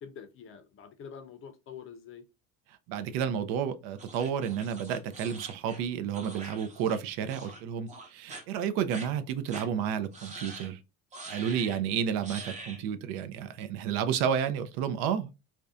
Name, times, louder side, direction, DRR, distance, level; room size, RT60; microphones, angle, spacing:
voice 1, 0.0-2.2, left 7 dB, 40° left, 0.5 m, -46 dB
voice 2, 2.9-10.8 11.3-15.3, right 8 dB, 80° right, 0.5 m, -31 dB
sound 1, 4.0-7.0 7.3-7.6 7.9-8.4 8.9-9.1 9.5-9.7 10.1-10.7 11.1-11.8 12.2-12.8, right 3 dB, 20° right, 0.6 m, -44 dB
2.6 x 2.1 x 2.3 m
cardioid pair, 130°, 34 cm